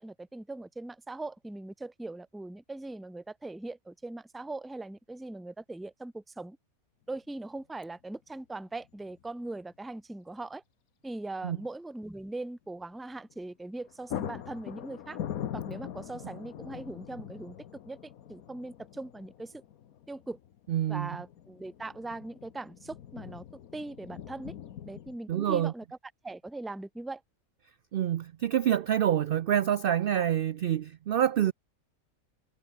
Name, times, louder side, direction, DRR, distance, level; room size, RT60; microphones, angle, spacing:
voice 1, 0.0-6.6 7.1-10.6 11.0-15.2 15.5-17.6 17.9-19.6 20.1-20.4 20.9-23.4 23.7-24.5 24.8-25.8 26.2-27.2, right 2 dB, ahead, 1.1 m, -40 dB
sound 1, 7.2-7.3 8.8-9.3 9.5-9.6 13.3-13.5 13.8-25.2, left 10 dB, 85° left, 1.4 m, -42 dB
voice 2, 20.7-21.1 25.3-25.7 27.9-31.5, right 10 dB, 75° right, 0.5 m, -27 dB
omnidirectional pair, 1.5 m